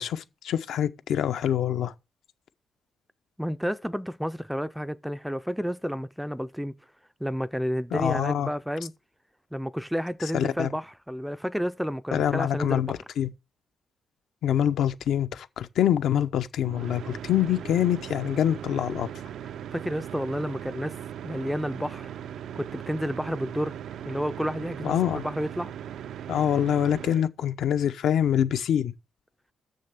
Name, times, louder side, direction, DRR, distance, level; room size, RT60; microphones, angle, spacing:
voice 1, 0.0-1.9 7.9-8.5 10.3-10.7 12.1-13.3 14.4-19.1 24.8-25.2 26.3-28.9, left 10 dB, 70° left, 0.7 m, -25 dB
voice 2, 3.4-6.7 7.2-8.9 9.5-13.0 19.7-20.9 21.2-22.1 22.6-23.8 24.0-25.7, equal, ahead, 0.4 m, -31 dB
sound 1, 16.6-27.3, right 10 dB, 70° right, 0.4 m, -39 dB
6.7 x 6.5 x 6.9 m
cardioid pair, 140°, 0 cm